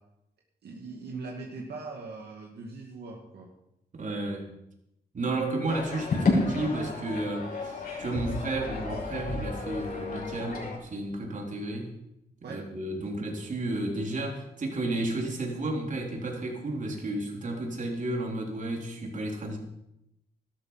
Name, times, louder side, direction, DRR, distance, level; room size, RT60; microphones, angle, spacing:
voice 1, 0.6-3.5 12.4-12.6, right 3 dB, 75° right, -1 dB, 2.2 m, -40 dB
voice 2, 3.9-4.5 5.1-12.0 12.5-19.6, right 2 dB, 50° right, 1 dB, 3.7 m, -32 dB
sound 1, 5.7-10.8, left 3 dB, 60° left, 6.1 m, -31 dB
13.0 x 13.0 x 5.8 m, 0.85 s
cardioid pair, 90°, 17 cm